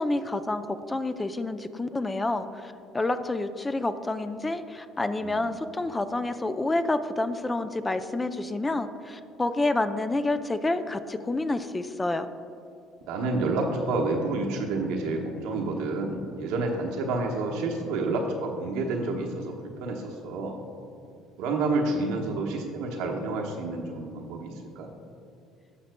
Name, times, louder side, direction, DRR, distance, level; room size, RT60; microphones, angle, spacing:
voice 1, 0.0-12.3, left 2 dB, 20° left, 9 dB, 0.5 m, -28 dB
voice 2, 13.1-20.6 21.4-24.9, right 3 dB, 75° right, 1 dB, 1.0 m, -29 dB
17.0 x 5.8 x 2.2 m, 2.5 s
hypercardioid pair, 70°, 0 cm